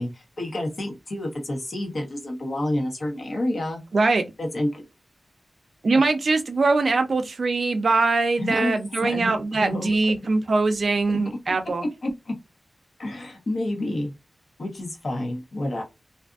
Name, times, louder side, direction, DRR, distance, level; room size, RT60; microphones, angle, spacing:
voice 1, 0.0-3.8 4.4-4.9 8.4-9.9 11.5-11.6 12.0-12.3 13.0-14.1 14.6-15.8, left 1 dB, 65° left, 1.0 m, -29 dB
voice 2, 3.9-4.3 5.8-11.9, right 3 dB, 70° right, 0.5 m, -22 dB
2.5 x 2.5 x 2.4 m
wide cardioid pair, 100°, 0 cm